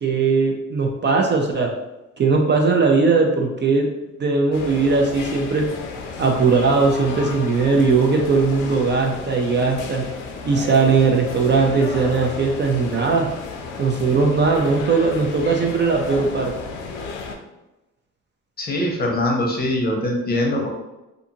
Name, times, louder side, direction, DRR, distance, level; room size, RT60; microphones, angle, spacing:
voice 1, 0.0-1.7 2.2-3.9 4.2-5.6 6.2-10.0 10.4-13.3 13.8-16.5, right 4 dB, 35° right, 2 dB, 0.4 m, -19 dB
sound 1, 4.5-17.4, left 4 dB, 85° left, 0.5 m, -33 dB
voice 2, 18.6-20.7, left 1 dB, 30° left, 0 dB, 0.7 m, -22 dB
2.5 x 2.4 x 2.7 m, 1.0 s
cardioid pair, 90°, 30 cm